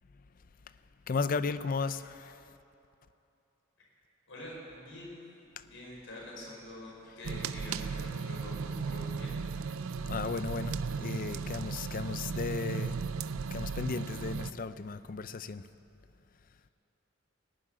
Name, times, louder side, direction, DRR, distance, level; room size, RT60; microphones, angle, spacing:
voice 1, 1.1-2.4 10.1-13.0 13.5-15.7, left 4 dB, 40° left, 14 dB, 0.4 m, -35 dB
voice 2, 4.3-5.2 5.6-9.3, left 1 dB, 65° left, -4 dB, 5.0 m, -46 dB
sound 1, 7.2-14.5, right 5 dB, 90° right, 0.5 m, -36 dB
18.5 x 7.6 x 10.0 m, 2.8 s
head